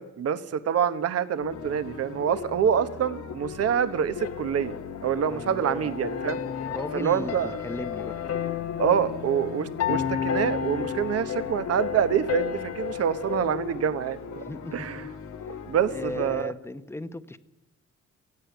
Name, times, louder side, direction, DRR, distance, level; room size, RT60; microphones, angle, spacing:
voice 1, 0.0-4.8 5.0-6.4 6.9-7.6 8.8-14.4 14.7-15.1 15.7-16.5, right 8 dB, 55° right, 12 dB, 1.2 m, -26 dB
sound 1, 1.4-16.4, left 6 dB, 75° left, 2.2 m, -39 dB
sound 2, 4.2-13.6, left 8 dB, 55° left, 1.2 m, -32 dB
voice 2, 5.2-6.0 6.7-8.2 14.4-14.9 15.9-17.4, left 2 dB, 10° left, 11 dB, 0.9 m, -36 dB
16.5 x 16.5 x 9.3 m, 0.92 s
cardioid pair, 145°, 29 cm